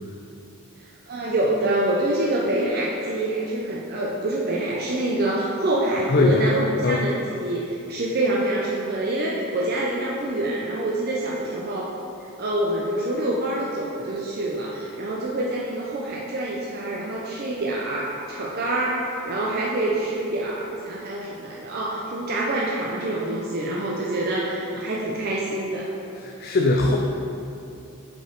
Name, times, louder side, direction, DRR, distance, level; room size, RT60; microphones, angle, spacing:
voice 1, 1.1-11.9 12.4-25.9, right 1 dB, 45° right, -4 dB, 0.5 m, -26 dB
voice 2, 6.1-6.5 6.8-7.0 26.2-27.0, left 2 dB, 45° left, -1 dB, 0.4 m, -20 dB
5.2 x 5.0 x 4.4 m, 2.7 s
head